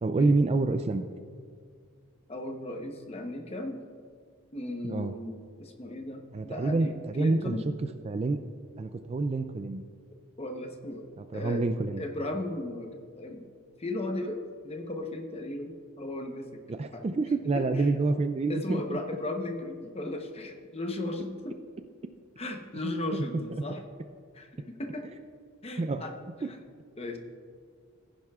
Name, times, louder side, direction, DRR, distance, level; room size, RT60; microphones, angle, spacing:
voice 1, 0.0-1.1 4.8-5.1 6.3-7.6 8.0-8.4 8.8-9.8 11.2-12.0 16.7-18.8 22.8-23.3 23.6-23.7 25.8-26.0 26.4-26.5, right 3 dB, 30° right, 9 dB, 0.3 m, -28 dB
voice 2, 2.3-3.8 4.5-7.7 10.4-11.1 11.3-11.6 12.0-13.4 13.8-16.6 16.9-17.0 17.5-17.9 18.5-21.6 22.4-23.8 24.3-25.0 25.6-26.1 26.5-26.6 27.0-27.2, left 2 dB, 30° left, 4 dB, 0.9 m, -36 dB
15.5 x 10.5 x 2.4 m, 2.1 s
head